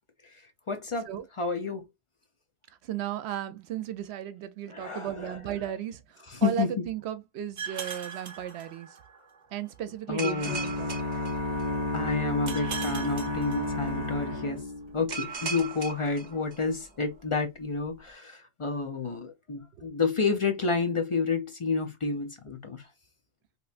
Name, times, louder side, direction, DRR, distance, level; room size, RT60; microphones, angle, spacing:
voice 1, 0.7-1.1 1.3-1.8 4.7-5.8 6.2-6.9 7.8-8.0 10.1-10.6 11.9-14.6 14.9-22.9, left 4 dB, 40° left, 0.5 m, -30 dB
voice 2, 2.9-6.0 6.4-8.9 9.5-10.9, right 10 dB, 80° right, 0.8 m, -35 dB
sound 1, 7.6-9.2 10.2-11.9 12.5-14.1 15.1-16.8, right 5 dB, 50° right, 0.7 m, -38 dB
sound 2, 10.4-15.4, left 2 dB, 15° right, 1.7 m, -32 dB
3.3 x 2.9 x 2.4 m
omnidirectional pair, 1.1 m